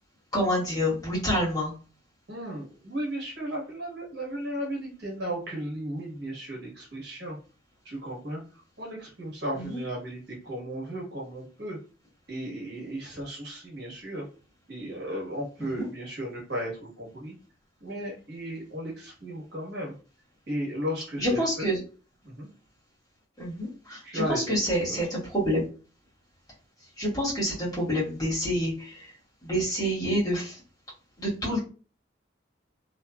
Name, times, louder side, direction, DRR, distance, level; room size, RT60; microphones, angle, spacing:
voice 1, 0.3-1.7 9.5-9.8 15.6-15.9 21.2-21.8 23.4-25.7 27.0-29.1 29.4-30.5 31.2-31.6, equal, 20° left, -7 dB, 1.2 m, -27 dB
voice 2, 2.3-7.4 7.8-8.4 8.8-11.8 12.3-14.2 14.7-17.3 17.8-19.9 20.5-21.7 22.2-22.5 24.0-25.0, equal, 55° right, -4 dB, 1.2 m, -35 dB
2.6 x 2.4 x 2.2 m, 0.36 s
head